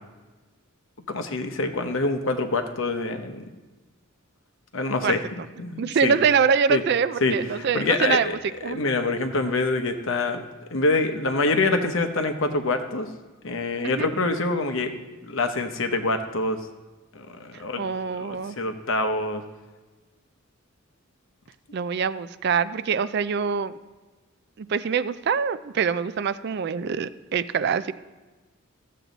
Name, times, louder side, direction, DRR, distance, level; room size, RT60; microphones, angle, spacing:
voice 1, 1.1-3.4 4.7-5.2 5.6-6.1 6.7-6.8 7.2-8.4 8.7-10.4 10.7-13.1 13.4-14.9 15.3-16.6 17.1-17.8 18.2-19.4, left 3 dB, 60° left, 7 dB, 0.9 m, -25 dB
voice 2, 5.8-8.3 8.6-8.8 13.8-14.1 17.8-18.6 21.7-23.7 24.6-27.9, right 6 dB, 50° right, 14 dB, 0.3 m, -24 dB
13.5 x 7.5 x 4.0 m, 1.2 s
head